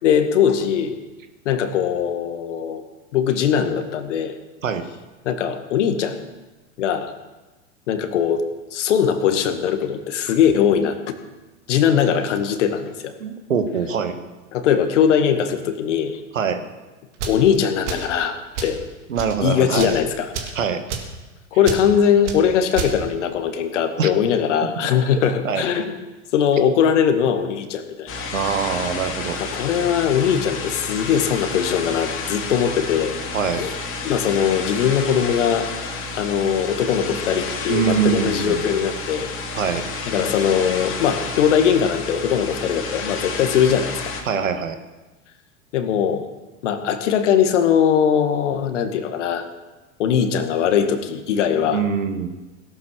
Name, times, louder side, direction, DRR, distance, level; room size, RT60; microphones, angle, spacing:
voice 1, 0.0-1.0 1.5-2.8 3.1-4.4 5.3-6.2 6.8-7.1 7.9-8.4 8.7-11.2 11.7-13.1 14.5-16.2 17.2-18.8 19.4-20.3 21.5-25.9 26.3-28.3 29.4-33.2 33.6-33.7 34.0-35.7 36.1-39.3 40.1-44.0 45.7-46.3 46.6-49.5 50.0-51.8, left 8 dB, 65° left, 7 dB, 2.1 m, -20 dB
voice 2, 13.2-14.2 16.3-16.6 19.1-20.0 20.5-20.8 24.0-24.1 25.4-25.7 28.3-29.4 33.3-33.6 37.7-38.7 39.5-39.9 44.2-44.8 51.7-52.3, right 6 dB, 80° right, 8 dB, 1.8 m, -23 dB
sound 1, 17.1-17.4 17.8-18.1 18.5-18.8 19.1-19.4 19.7-20.0 20.3-20.6 20.9-21.1 21.6-21.8 22.2-22.4 22.7-22.9, right 6 dB, 60° right, 3.1 m, -29 dB
sound 2, 28.1-44.2, left 4 dB, 35° left, 3.2 m, -30 dB
17.5 x 11.5 x 6.5 m, 1.2 s
hypercardioid pair, 95°, 39 cm